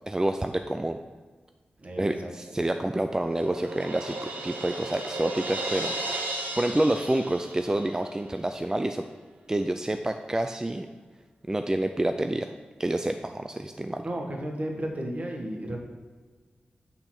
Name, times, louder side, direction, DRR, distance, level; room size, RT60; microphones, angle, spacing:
voice 1, 0.1-1.0 2.0-6.3 6.6-9.0 9.5-10.9 11.5-12.5 12.8-14.1, right 1 dB, 20° right, 7 dB, 0.4 m, -28 dB
voice 2, 1.8-2.3 14.0-15.8, right 1 dB, 45° right, 1 dB, 1.5 m, -33 dB
Crash cymbal, 2.5-8.2, right 2 dB, 85° right, 1.1 m, -35 dB
8.8 x 4.0 x 6.0 m, 1.4 s
cardioid pair, 60°, 3 cm